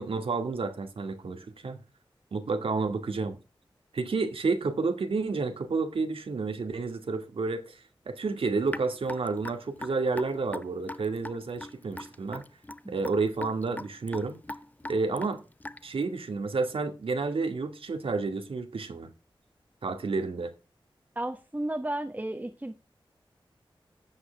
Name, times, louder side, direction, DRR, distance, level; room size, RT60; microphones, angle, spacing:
voice 1, 0.0-1.8 2.3-3.4 3.9-12.4 12.9-14.4 14.9-15.4 15.8-19.1 19.8-20.5, right 4 dB, 85° right, 2.1 m, -30 dB
Raindrop / Drip, 8.7-16.0, left 1 dB, 15° left, 0.7 m, -40 dB
voice 2, 21.1-22.7, right 1 dB, 15° right, 1.3 m, -33 dB
13.0 x 8.2 x 3.5 m
wide cardioid pair, 70°, 9 cm